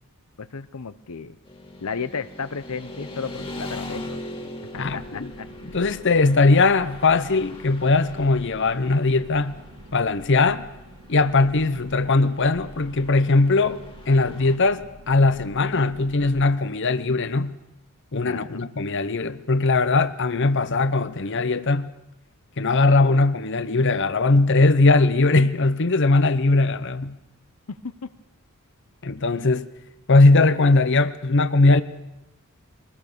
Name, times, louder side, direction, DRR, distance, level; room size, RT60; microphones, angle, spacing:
voice 1, 0.4-1.4 1.8-4.2 4.7-5.5 18.2-18.7 27.8-28.1, left 5 dB, 85° left, 0.8 m, -34 dB
Motorcycle / Traffic noise roadway noise, 1.5-14.6, left 1 dB, 25° left, 2.1 m, -41 dB
sound 1, 4.7-16.5, right 1 dB, 70° right, 1.9 m, -47 dB
voice 2, 4.8-5.3 5.7-9.6 9.9-10.7 11.1-17.6 18.1-21.9 22.6-27.2 29.0-29.7 30.1-31.8, left 3 dB, 55° left, 0.9 m, -20 dB
23.5 x 20.5 x 6.9 m
head